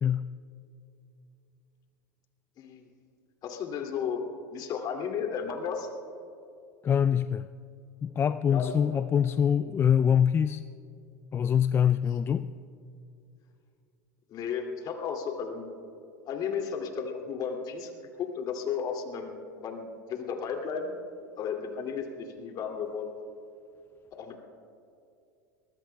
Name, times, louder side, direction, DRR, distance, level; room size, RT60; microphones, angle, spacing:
voice 1, 2.6-2.9 3.4-4.2 4.5-5.9 8.5-9.0 14.3-15.7 16.3-17.9 18.2-20.9 21.4-23.1 24.2-24.4, left 6 dB, 45° left, 2 dB, 2.5 m, -34 dB
voice 2, 6.8-7.5 8.0-10.6 11.3-12.5, left 8 dB, 25° left, 13 dB, 0.3 m, -24 dB
24.0 x 21.0 x 2.3 m, 2.6 s
hypercardioid pair, 90°, 9 cm